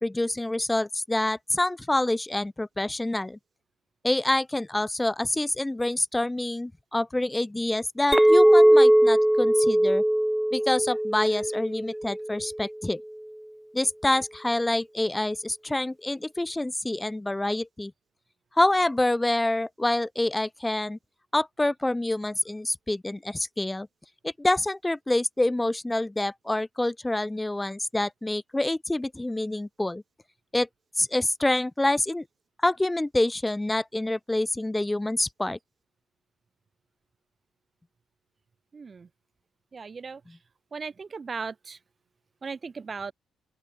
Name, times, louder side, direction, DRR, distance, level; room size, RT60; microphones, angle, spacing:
voice 1, 0.0-3.4 4.0-10.0 10.5-13.0 13.7-17.9 18.6-21.0 21.3-23.9 24.2-30.0 30.5-30.7 31.0-32.2 32.6-35.6, left 1 dB, 10° left, 2.0 m, -27 dB
Chink clink, 8.1-12.6, right 1 dB, 5° right, 3.7 m, -20 dB
voice 2, 39.7-40.2 40.7-41.5 42.4-43.1, right 5 dB, 35° right, 2.8 m, -36 dB
open air
cardioid pair, 90°, 0 cm